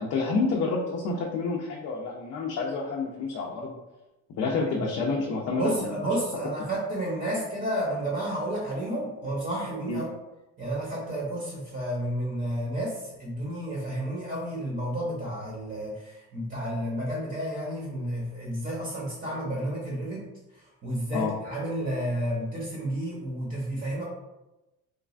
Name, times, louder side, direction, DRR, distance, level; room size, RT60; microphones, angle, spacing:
voice 1, 0.0-3.8 4.4-6.1 9.9-10.0 21.1-21.3, left 4 dB, 50° left, -2 dB, 0.5 m, -29 dB
voice 2, 5.5-10.1 10.6-20.3 20.8-24.0, right 1 dB, 30° right, -5 dB, 0.8 m, -31 dB
3.1 x 2.3 x 2.4 m, 1.0 s
cardioid pair, 120°, 33 cm